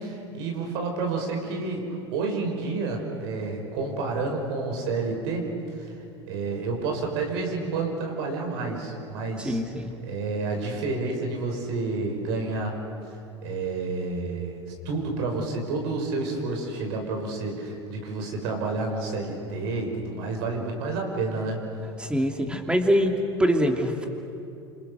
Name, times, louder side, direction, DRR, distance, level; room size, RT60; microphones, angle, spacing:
voice 1, 0.0-5.5 5.8-5.9 6.3-9.6 10.0-12.8 13.4-21.6, right 3 dB, 70° right, 2 dB, 5.6 m, -29 dB
voice 2, 9.4-9.9 22.0-23.1 23.4-24.1, equal, 5° right, 4 dB, 3.0 m, -24 dB
28.0 x 26.5 x 6.5 m, 2.7 s
hypercardioid pair, 80°, 14 cm